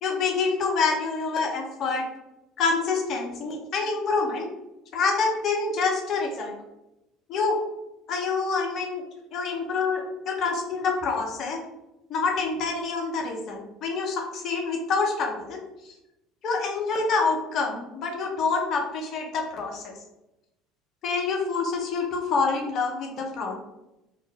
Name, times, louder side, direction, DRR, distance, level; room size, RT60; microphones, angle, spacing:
voice 1, 0.0-2.0 2.6-4.5 4.9-6.6 7.3-7.6 8.1-9.0 9.3-11.6 12.1-15.6 16.4-19.9 21.0-23.5, left 4 dB, 50° left, 1 dB, 0.7 m, -27 dB
2.7 x 2.1 x 3.3 m, 0.93 s
hypercardioid pair, 65°, 0 cm